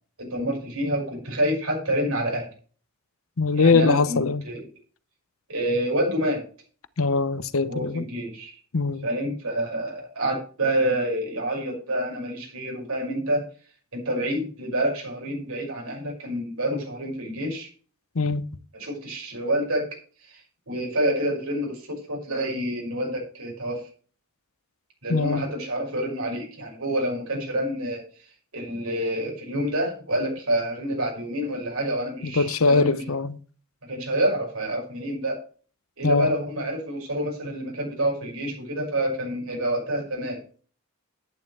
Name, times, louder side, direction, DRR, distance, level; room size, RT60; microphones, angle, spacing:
voice 1, 0.2-2.5 3.5-4.6 5.5-6.4 7.6-8.6 9.0-13.4 13.9-17.7 18.7-19.9 20.3-20.4 20.7-23.8 25.0-28.0 28.5-33.0 33.8-35.4 36.0-40.4, right 1 dB, 80° right, 6.0 m, -28 dB
voice 2, 3.4-4.4 7.0-8.0 8.7-9.1 18.2-18.4 25.1-25.4 32.2-33.4 36.0-36.3, left 4 dB, 70° left, 0.8 m, -22 dB
11.5 x 10.5 x 3.3 m
head